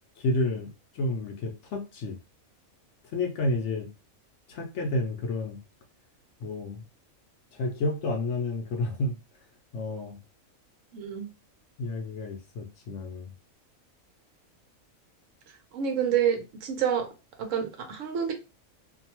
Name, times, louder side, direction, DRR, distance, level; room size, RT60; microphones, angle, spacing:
voice 1, 0.2-2.2 3.1-3.9 4.5-5.6 6.4-6.8 7.5-9.2 9.7-10.2 11.8-13.3, left 2 dB, 65° left, 0.8 m, -30 dB
voice 2, 10.9-11.3 15.7-17.1 17.4-18.3, right 8 dB, 70° right, 0.9 m, -28 dB
2.6 x 2.2 x 2.9 m
omnidirectional pair, 1.4 m